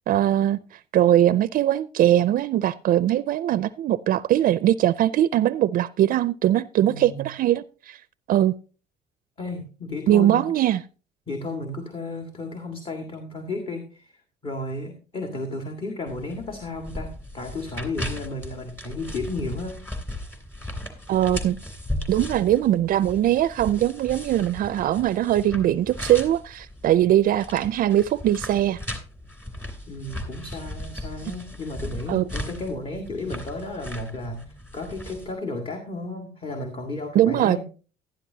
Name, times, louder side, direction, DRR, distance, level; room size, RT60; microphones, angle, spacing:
voice 1, 0.1-8.0 8.3-8.5 10.1-10.8 21.1-21.6 22.1-28.8 32.1-32.2 37.1-37.6, right 12 dB, 55° right, 0.4 m, -21 dB
voice 2, 6.8-7.3 9.4-10.5 11.3-19.8 29.9-37.6, left 2 dB, 35° left, 1.9 m, -33 dB
sound 1, 16.1-35.3, left 1 dB, 10° left, 2.9 m, -37 dB
12.0 x 11.5 x 2.8 m
cardioid pair, 110°, 17 cm